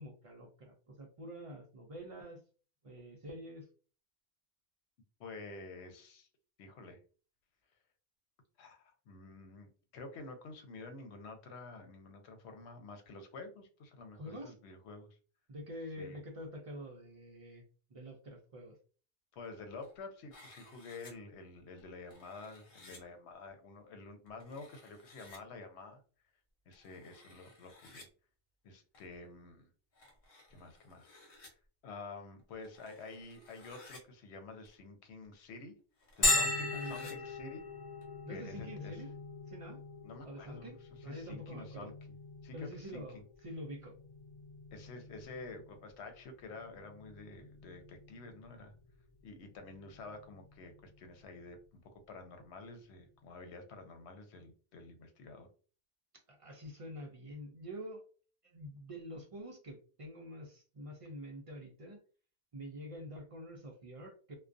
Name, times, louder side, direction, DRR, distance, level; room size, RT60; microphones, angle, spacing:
voice 1, 0.0-2.4 2.8-3.7 14.2-14.6 15.5-17.6 17.9-18.8 36.2-36.5 36.7-37.2 38.2-39.1 39.5-39.8 40.2-40.8 41.0-41.9 42.5-44.0 56.3-58.0 58.4-62.0 62.5-64.3, equal, 50° right, 1 dB, 0.4 m, -46 dB
voice 2, 5.2-6.3 6.6-7.0 8.6-15.2 16.0-16.2 19.3-26.0 26.7-28.1 28.6-29.7 30.5-31.2 31.8-35.7 36.2-37.6 38.3-39.0 40.0-40.7 41.0-41.9 42.4-43.2 44.7-48.7 49.2-55.5, left 3 dB, 85° left, 6 dB, 0.9 m, -49 dB
sound 1, 19.5-20.0 20.3-21.1 21.8-23.0 24.3-25.4 26.7-28.1 28.9-29.1 29.9-31.5 32.4-34.0 34.7-34.8 35.2-35.3 36.0-37.1 38.0-38.1, left 2 dB, 60° left, 1.0 m, -58 dB
Bell, 36.2-51.7, left 2 dB, 40° left, 0.3 m, -40 dB
2.3 x 2.1 x 2.5 m, 0.38 s
omnidirectional pair, 1.1 m